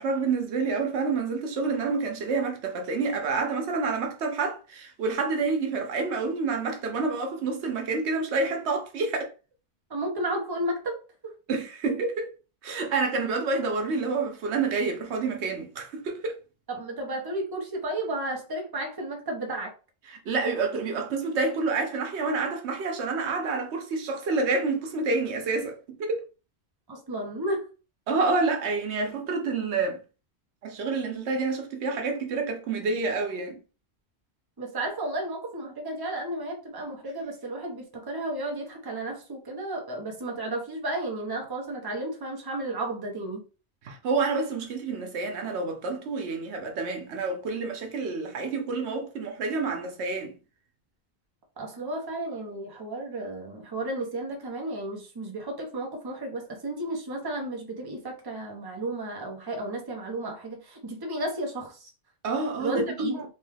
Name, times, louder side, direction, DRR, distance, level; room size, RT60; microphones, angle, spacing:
voice 1, 0.0-9.3 11.5-12.3 12.6-16.3 20.1-26.2 28.1-30.0 30.6-33.6 43.8-50.3 62.2-63.2, right 4 dB, 90° right, 1.0 m, -28 dB
voice 2, 9.9-11.3 16.7-19.7 26.9-27.7 34.6-43.4 51.6-61.9 62.6-63.2, right 1 dB, 25° right, 0.7 m, -33 dB
3.2 x 2.2 x 3.2 m
omnidirectional pair, 1.1 m